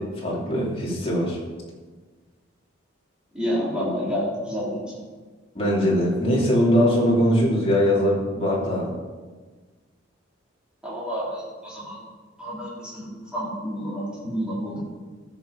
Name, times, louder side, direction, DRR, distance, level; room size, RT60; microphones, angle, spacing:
voice 1, 0.0-1.4 5.5-8.9, equal, 30° left, -4 dB, 2.9 m, -21 dB
voice 2, 3.3-5.0 10.8-12.0 12.4-14.8, equal, 5° right, -8 dB, 3.6 m, -29 dB
13.5 x 6.7 x 5.3 m, 1.4 s
head